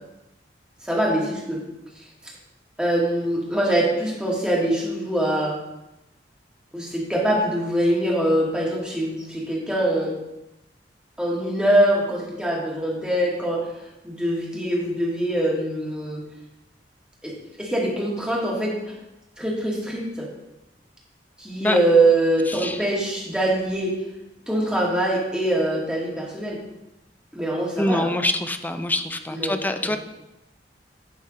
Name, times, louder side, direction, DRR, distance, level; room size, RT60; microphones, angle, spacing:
voice 1, 0.9-1.6 2.8-5.5 6.7-10.1 11.2-13.6 14.0-16.2 17.2-17.3 17.6-18.9 19.4-20.3 21.4-23.9 24.5-26.6 27.3-28.1 29.3-30.0, right 1 dB, 5° right, -4 dB, 2.0 m, -23 dB
voice 2, 22.5-22.8 27.8-30.0, left 1 dB, 10° left, 7 dB, 0.5 m, -25 dB
11.0 x 4.1 x 5.1 m, 0.94 s
head